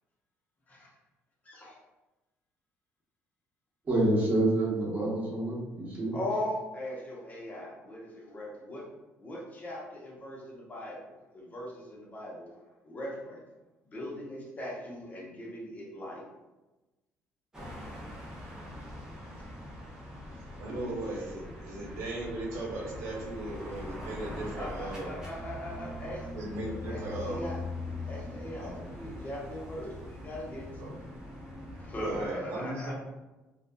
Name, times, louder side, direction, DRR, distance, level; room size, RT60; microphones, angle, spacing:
voice 1, 1.4-1.8 6.1-8.9 9.2-13.4 13.8-14.1 14.6-16.2 24.5-26.3 26.9-30.7 31.8-32.9, left 1 dB, 30° left, -4 dB, 0.8 m, -39 dB
voice 2, 3.9-6.2, right 1 dB, 35° right, -6 dB, 1.1 m, -27 dB
sound 1, 17.5-32.3, left 1 dB, 10° right, 0.8 m, -42 dB
voice 3, 20.6-25.1 26.3-27.5 28.6-28.8 30.8-30.9 32.0-32.9, right 1 dB, 75° right, -3 dB, 0.8 m, -37 dB
2.5 x 2.4 x 2.2 m, 1.1 s
cardioid pair, 95°, 5 cm